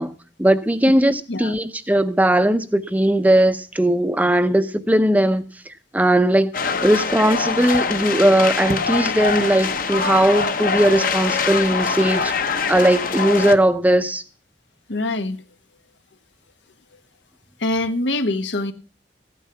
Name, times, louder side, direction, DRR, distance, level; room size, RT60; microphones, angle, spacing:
voice 1, 0.0-5.5 5.9-6.5 6.8-14.2, right 1 dB, 10° right, 0.6 m, -18 dB
sound 1, 6.5-13.5, left 5 dB, 50° left, 1.0 m, -23 dB
voice 2, 14.9-15.4 17.6-18.7, left 2 dB, 85° left, 1.1 m, -24 dB
14.5 x 9.1 x 5.8 m
head